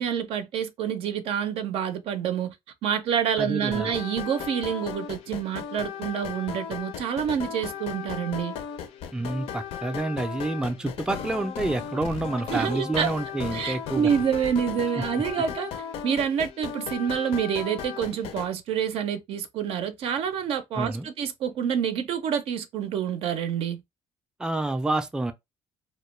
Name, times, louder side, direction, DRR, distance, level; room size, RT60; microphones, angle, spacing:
voice 1, 0.0-2.5 2.8-8.5 12.5-13.1 13.5-15.7 16.0-23.8, right 8 dB, 65° right, 0.5 m, -27 dB
voice 2, 3.4-3.9 9.1-14.1 20.8-21.1 24.4-25.3, right 2 dB, 5° right, 0.4 m, -28 dB
sound 1, 3.7-18.5, left 8 dB, 70° left, 0.5 m, -36 dB
2.2 x 2.1 x 3.1 m
cardioid pair, 95°, 10 cm